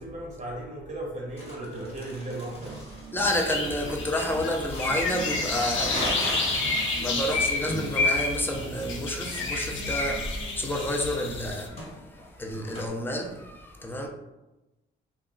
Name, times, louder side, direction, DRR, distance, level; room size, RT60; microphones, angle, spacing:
voice 1, 0.0-2.7, right 1 dB, 35° right, 0.9 m, -36 dB
Crumpling crinkling, 1.4-12.9, left 1 dB, 30° left, 1.1 m, -38 dB
sound 1, 2.4-4.5 4.7-6.2 6.5-8.2 8.5-11.7, right 3 dB, 75° right, 0.5 m, -44 dB
voice 2, 3.1-6.1 6.7-14.1, left 1 dB, 10° left, 0.5 m, -30 dB
sound 2, 3.2-11.7, left 3 dB, 75° left, 0.6 m, -30 dB
2.3 x 2.2 x 3.7 m
cardioid pair, 90°, 20 cm